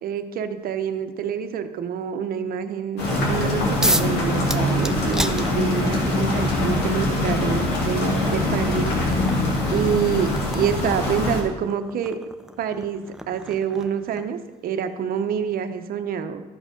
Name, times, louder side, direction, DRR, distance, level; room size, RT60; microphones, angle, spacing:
voice 1, 0.0-8.9 9.7-12.2 12.6-16.4, right 8 dB, 60° right, 9 dB, 0.8 m, -27 dB
steady rain room window indoor, 3.0-11.4, left 1 dB, 80° left, 2.2 m, -23 dB
sound 1, 3.8-4.2 4.5-6.0 7.1-7.2 7.8-14.4, right 1 dB, 5° right, 0.5 m, -31 dB
13.0 x 5.1 x 5.1 m, 1.3 s
cardioid pair, 110°, 17 cm